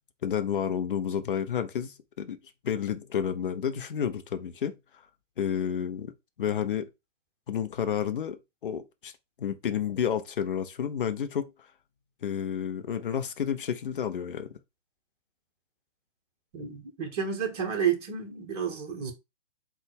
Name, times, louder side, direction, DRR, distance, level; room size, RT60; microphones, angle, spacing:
voice 1, 0.2-2.4 2.6-4.8 5.4-6.1 6.4-6.9 7.5-9.1 9.4-11.5 12.2-14.6, left 8 dB, 45° left, 0.6 m, -30 dB
voice 2, 16.5-19.1, right 7 dB, 30° right, 1.1 m, -30 dB
3.9 x 2.4 x 4.6 m
figure-of-eight pair, 130°, 37 cm